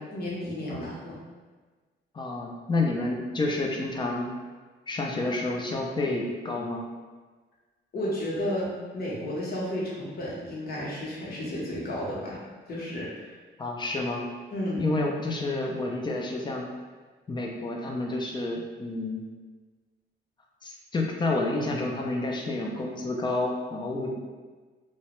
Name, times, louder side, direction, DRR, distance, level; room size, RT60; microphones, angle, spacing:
voice 1, 0.1-1.2 7.9-12.4 12.7-13.3 14.5-14.8, left 1 dB, 50° left, -5 dB, 0.8 m, -32 dB
voice 2, 2.1-4.3 4.9-6.9 13.6-14.2 14.8-16.7 17.3-19.3 20.6-24.1, left 2 dB, 25° left, 0 dB, 0.4 m, -29 dB
2.2 x 2.0 x 2.9 m, 1.4 s
cardioid pair, 90°, 20 cm